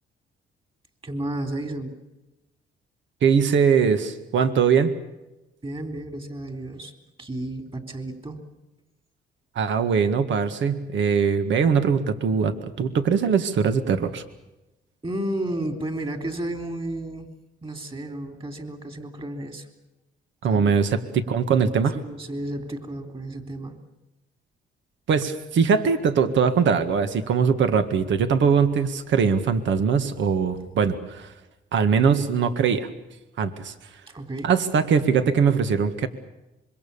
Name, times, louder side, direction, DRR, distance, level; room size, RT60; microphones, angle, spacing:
voice 1, 1.0-1.9 5.6-6.9 7.2-8.4 15.0-17.3 17.6-19.7 20.5-20.7 22.0-23.8 34.1-34.5, right 1 dB, 25° right, 6 dB, 3.8 m, -32 dB
voice 2, 3.2-4.9 9.6-14.2 20.4-22.0 25.1-31.3 31.7-32.9 33.4-33.7 34.4-36.1, right 6 dB, 70° right, 9 dB, 1.9 m, -21 dB
25.5 x 23.0 x 7.1 m, 0.99 s
cardioid pair, 90°, 20 cm